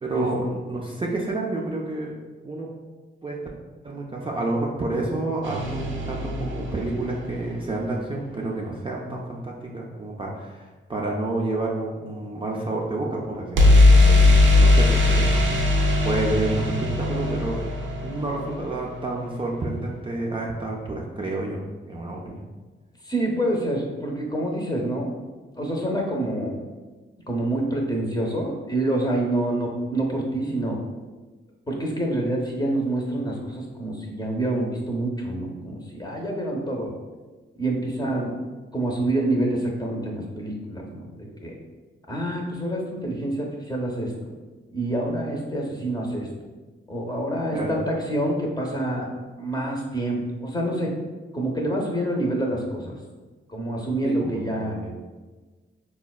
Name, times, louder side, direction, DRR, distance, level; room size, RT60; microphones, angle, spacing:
voice 1, 0.0-2.2 2.4-2.7 3.2-3.4 3.8-15.5 16.0-17.6 18.0-22.4 47.5-47.8 54.0-54.9, right 2 dB, 25° right, -3 dB, 0.4 m, -29 dB
sound 1, 5.4-7.5 13.6-19.3, left 2 dB, 75° right, 0.5 m, -19 dB
voice 2, 23.0-25.1 25.6-26.6 27.3-30.8 31.7-36.9 37.6-38.4 38.7-41.6 42.1-44.1 44.7-46.3 46.9-50.9 51.3-53.0 53.5-54.8, right 1 dB, 20° left, -1 dB, 0.7 m, -27 dB
4.0 x 2.2 x 2.3 m, 1.3 s
cardioid pair, 70°, 20 cm